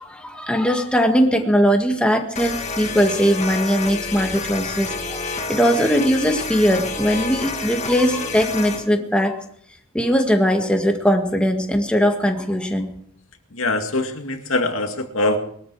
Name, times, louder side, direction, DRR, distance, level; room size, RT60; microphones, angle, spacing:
voice 1, 0.0-9.4 9.9-12.9, equal, 5° left, 3 dB, 1.8 m, -20 dB
sound 1, 2.3-8.9, left 4 dB, 35° left, 1.9 m, -29 dB
voice 2, 13.5-15.4, left 2 dB, 85° left, 5 dB, 2.2 m, -23 dB
22.0 x 13.0 x 4.8 m, 0.65 s
head